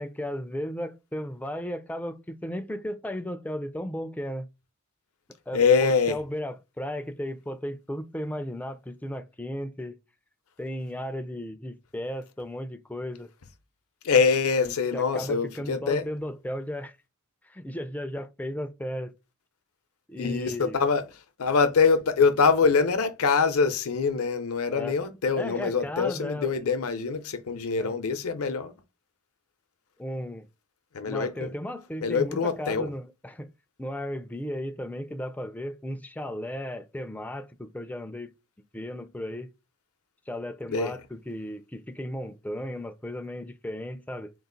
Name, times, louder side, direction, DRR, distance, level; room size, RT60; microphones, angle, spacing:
voice 1, 0.0-4.5 5.5-10.0 10.6-13.3 14.6-17.0 17.4-19.1 20.1-20.8 24.7-25.0 25.4-26.6 27.8-27.9 30.0-30.5 31.1-33.5 33.8-38.3 38.7-39.5 40.3-44.3, left 1 dB, 5° left, 0.4 m, -35 dB
voice 2, 5.5-6.2 14.0-16.0 20.2-21.0 21.4-28.7 30.9-31.5 32.0-32.9 40.7-40.9, left 5 dB, 70° left, 0.6 m, -24 dB
3.9 x 2.4 x 3.8 m
head